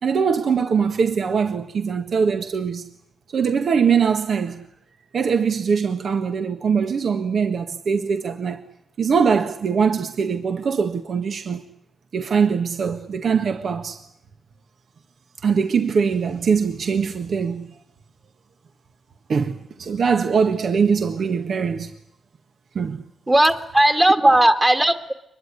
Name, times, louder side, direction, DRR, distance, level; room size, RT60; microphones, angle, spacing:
voice 1, 0.0-2.9 3.3-4.7 5.1-8.6 9.0-11.6 12.1-14.1 15.4-17.7 19.3-21.9 22.7-23.0 24.2-24.4, right 6 dB, 65° right, 1.6 m, -22 dB
voice 2, 23.3-25.1, right 1 dB, 20° right, 2.1 m, -16 dB
24.5 x 21.5 x 9.8 m
cardioid pair, 80°, 0 cm